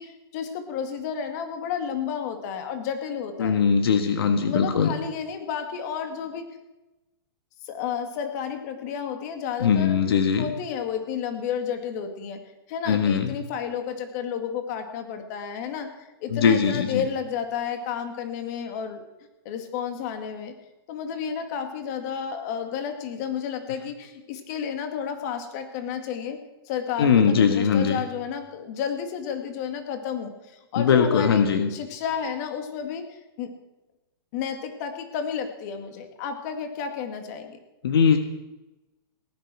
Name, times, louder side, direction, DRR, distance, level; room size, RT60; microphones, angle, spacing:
voice 1, 0.0-3.6 4.4-6.6 7.6-10.1 10.4-12.4 12.7-15.9 16.2-19.1 19.5-20.5 20.9-26.4 26.7-33.5 34.3-37.6, left 7 dB, 45° left, 7 dB, 2.1 m, -31 dB
voice 2, 3.4-4.9 9.6-10.5 12.9-13.3 16.3-17.0 27.0-28.0 30.8-31.7 37.8-38.2, left 6 dB, 75° left, 7 dB, 1.6 m, -20 dB
18.0 x 9.8 x 6.2 m, 1.0 s
hypercardioid pair, 145°, 13 cm